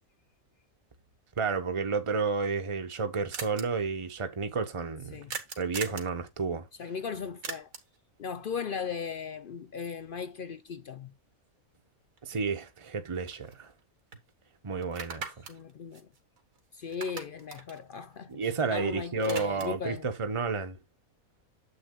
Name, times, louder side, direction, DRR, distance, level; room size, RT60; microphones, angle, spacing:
voice 1, 1.4-5.2 5.6-6.7 12.2-13.7 14.6-15.5 18.3-20.8, right 4 dB, 25° right, 1.0 m, -31 dB
sound 1, 2.9-3.0 3.3-3.6 5.3-6.1 7.4-8.0 12.2-12.3 12.6-13.8 14.1-14.2 14.8-16.6 16.9-18.7 19.0-19.9, right 5 dB, 70° right, 1.9 m, -41 dB
voice 2, 6.8-7.7 8.2-11.1 15.5-16.1 16.7-20.1, left 6 dB, 65° left, 0.5 m, -37 dB
9.8 x 7.6 x 2.3 m
omnidirectional pair, 1.5 m